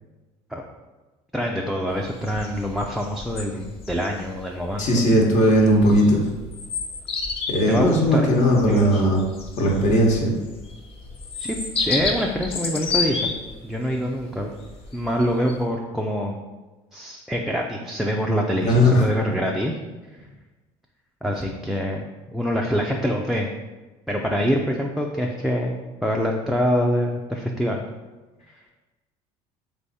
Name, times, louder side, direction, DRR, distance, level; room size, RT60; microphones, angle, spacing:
voice 1, 1.3-5.1 7.7-8.3 8.7-9.0 11.3-13.4 13.6-14.5 14.9-16.4 16.9-19.7 21.2-23.5 24.1-27.8, equal, ahead, -1 dB, 0.3 m, -25 dB
sound 1, 1.9-15.6, left 4 dB, 40° left, 0.7 m, -31 dB
voice 2, 4.8-6.2 7.5-9.2 9.6-10.3 18.6-19.1, equal, 60° left, -1 dB, 1.1 m, -18 dB
3.5 x 3.4 x 4.1 m, 1.2 s
cardioid pair, 115°, 14 cm